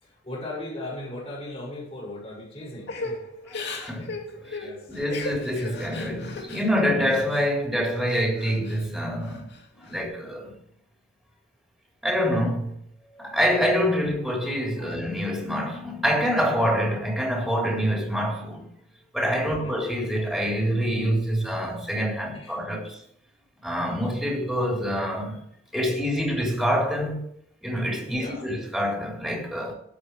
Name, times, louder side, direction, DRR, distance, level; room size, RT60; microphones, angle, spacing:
voice 1, 0.0-3.3 4.3-4.9 14.8-15.0 19.4-19.8 22.3-22.6 28.0-28.4, left 1 dB, 30° left, 7.0 m, -38 dB
Crying sobbing / Breathing, 2.9-7.5 7.9-8.8 9.2-10.0, left 3 dB, 60° left, 2.5 m, -37 dB
voice 2, 3.6-4.2 4.5-9.5 9.8-10.5 12.0-12.8 13.1-18.6 19.1-23.0 23.6-25.4 25.7-27.2 27.6-29.7, equal, ahead, 4.0 m, -26 dB
19.5 x 8.2 x 4.9 m
head